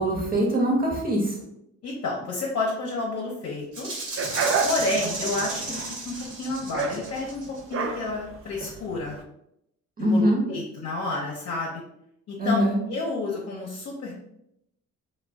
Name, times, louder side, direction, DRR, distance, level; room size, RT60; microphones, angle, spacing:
voice 1, 0.0-1.3 10.0-10.4 12.4-12.8, equal, 30° right, -1 dB, 0.9 m, -22 dB
voice 2, 1.8-3.9 4.6-7.4 7.7-9.2 10.0-11.8 12.3-14.1, left 2 dB, 55° left, -2 dB, 0.7 m, -30 dB
Rattle (instrument), 3.7-7.6, right 2 dB, 75° right, 1.1 m, -33 dB
sound 1, 4.2-9.2, right 5 dB, 45° right, 0.4 m, -30 dB
2.3 x 2.2 x 3.4 m, 0.78 s
cardioid pair, 90°, 30 cm